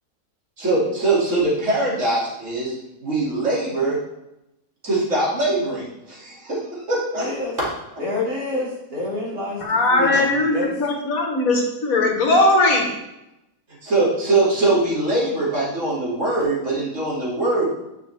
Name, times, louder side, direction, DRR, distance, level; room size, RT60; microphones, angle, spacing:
voice 1, 0.6-2.7 3.0-4.0 4.8-7.2 7.6-7.7 13.8-17.7, right 2 dB, 50° right, -6 dB, 3.0 m, -22 dB
voice 2, 7.1-7.6 8.0-10.7, left 2 dB, 75° right, -6 dB, 3.3 m, -28 dB
voice 3, 9.6-12.9, left 2 dB, 65° left, 1 dB, 1.8 m, -19 dB
9.5 x 6.0 x 3.5 m, 0.89 s
omnidirectional pair, 1.6 m